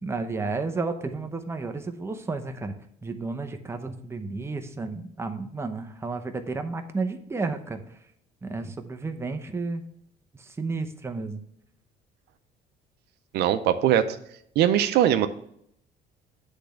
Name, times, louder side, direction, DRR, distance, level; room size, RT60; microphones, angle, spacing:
voice 1, 0.0-2.8 3.0-8.0 8.4-9.8 10.3-11.4, right 3 dB, 15° right, 6 dB, 0.8 m, -32 dB
voice 2, 13.3-14.2 14.6-15.3, right 10 dB, 75° right, 9 dB, 0.6 m, -21 dB
8.2 x 3.4 x 6.4 m, 0.71 s
cardioid pair, 110°, 17 cm